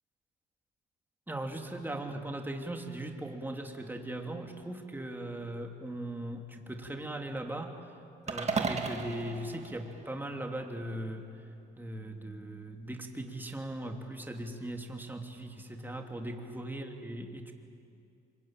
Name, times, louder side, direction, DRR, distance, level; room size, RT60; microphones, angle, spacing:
voice 1, 1.3-7.7 8.3-11.2 11.8-17.5, right 1 dB, 10° right, 3 dB, 2.9 m, -39 dB
sound 1, 8.3-10.6, right 4 dB, 40° right, 2.2 m, -35 dB
25.0 x 23.0 x 9.0 m, 2.5 s
cardioid pair, 90°, 19 cm